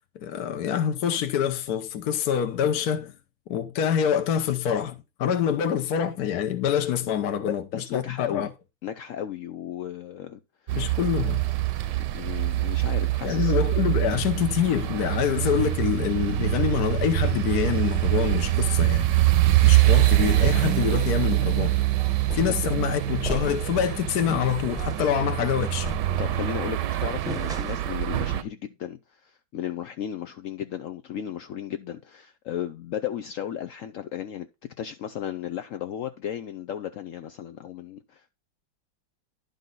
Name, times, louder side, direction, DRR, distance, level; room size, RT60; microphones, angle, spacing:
voice 1, 0.1-3.1 3.5-7.6 7.9-8.5 10.7-11.4 13.2-19.1 19.6-21.8 22.3-25.9, left 9 dB, 60° left, 1.2 m, -26 dB
voice 2, 7.7-8.5 8.8-10.7 12.1-13.6 19.5-19.6 22.5-22.7 26.2-34.5 34.8-38.3, left 10 dB, 80° left, 0.7 m, -35 dB
sound 1, 10.7-28.4, right 15 dB, 70° right, 1.3 m, -24 dB
sound 2, 22.3-22.7 23.2-23.8 24.2-24.4 24.8-25.1 25.8-26.5 27.3-28.0, equal, 5° right, 0.6 m, -35 dB
11.0 x 5.3 x 3.8 m
omnidirectional pair, 2.1 m